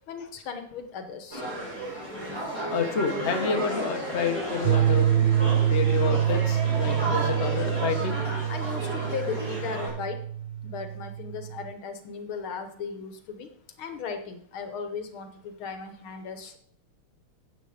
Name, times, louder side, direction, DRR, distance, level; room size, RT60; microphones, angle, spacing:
voice 1, 0.1-1.4 8.5-10.2 10.6-13.5 13.8-16.6, left 6 dB, 70° left, 8 dB, 1.9 m, -36 dB
sound 1, 1.3-9.9, right 1 dB, 50° right, 7.2 m, -33 dB
voice 2, 2.7-5.1 5.7-8.1, left 5 dB, 35° left, 4 dB, 1.4 m, -29 dB
sound 2, 4.6-11.7, right 10 dB, 75° right, 1.0 m, -26 dB
12.5 x 8.4 x 5.1 m, 0.62 s
omnidirectional pair, 2.4 m